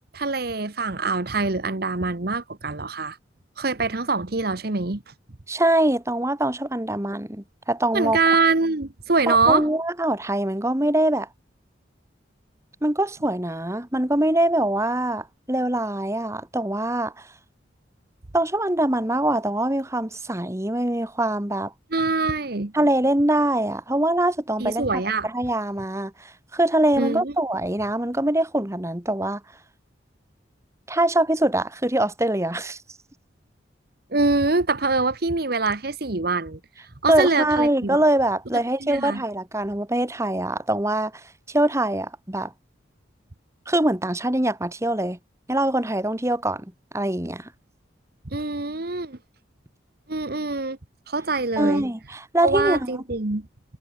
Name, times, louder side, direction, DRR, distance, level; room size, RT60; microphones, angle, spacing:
voice 1, 0.1-3.2 3.6-5.1 7.9-9.7 21.9-22.7 24.6-25.3 27.0-27.3 34.1-36.6 37.0-38.0 38.5-39.2 48.3-49.2 50.1-50.8 51.1-51.9 52.4-53.5, right 3 dB, 55° right, 1.3 m, -24 dB
voice 2, 5.5-8.2 9.3-11.3 12.8-17.3 18.3-21.7 22.7-29.4 30.9-32.8 37.1-42.5 43.7-45.2 45.5-46.7 46.9-47.5 51.6-52.9, right 1 dB, 15° right, 1.6 m, -23 dB
head